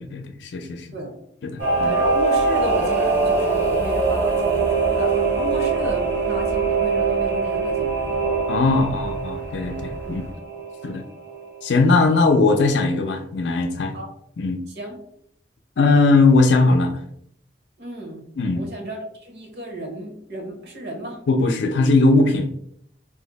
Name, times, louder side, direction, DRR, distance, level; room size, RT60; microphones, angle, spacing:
voice 1, 0.2-0.9 1.4-1.9 8.5-10.2 10.8-11.0 11.6-13.9 14.4-14.6 15.8-16.9 18.4-18.6 21.3-22.5, left 3 dB, 75° left, 6 dB, 0.4 m, -19 dB
sound 1, 1.6-10.3, equal, 15° left, 0.4 m, -36 dB
Singing / Musical instrument, 1.6-11.6 11.9-12.0, right 4 dB, 80° right, 1.3 m, -23 dB
voice 2, 1.8-8.2 10.0-10.1 13.9-14.1 14.7-15.0 17.8-18.2 18.5-21.2, right 1 dB, 60° right, 1 dB, 0.8 m, -33 dB
2.5 x 2.0 x 3.8 m, 0.70 s
head